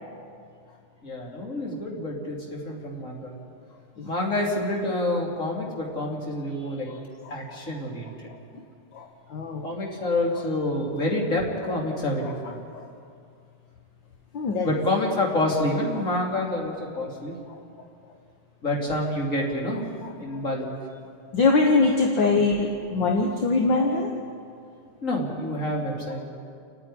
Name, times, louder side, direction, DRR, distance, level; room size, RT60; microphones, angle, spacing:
voice 1, 1.0-3.3 4.0-6.9 7.3-8.1 9.6-12.6 14.6-17.3 18.6-19.8 20.2-20.6 25.0-26.2, left 1 dB, 35° left, -2 dB, 3.5 m, -27 dB
voice 2, 9.3-9.7 10.3-10.4 12.2-12.8 14.3-14.7 20.0-20.1 21.3-24.1, left 3 dB, 65° left, 2 dB, 1.9 m, -23 dB
29.0 x 9.9 x 10.0 m, 2.3 s
omnidirectional pair, 2.3 m